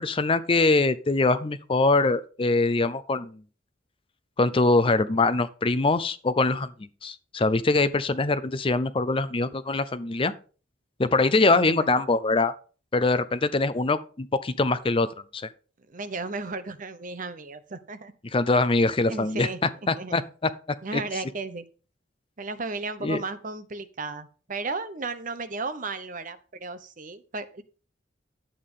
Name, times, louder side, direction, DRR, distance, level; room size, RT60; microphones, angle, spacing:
voice 1, 0.0-3.4 4.4-6.7 7.0-10.3 11.0-12.5 12.9-15.5 18.3-19.5 19.9-20.5 20.9-21.0 23.0-23.2, left 3 dB, 30° left, 0.5 m, -23 dB
voice 2, 11.3-11.9 15.9-18.1 19.1-19.6 20.0-20.1 20.8-21.6 22.4-27.6, right 3 dB, 45° right, 0.8 m, -34 dB
11.0 x 8.3 x 3.8 m
head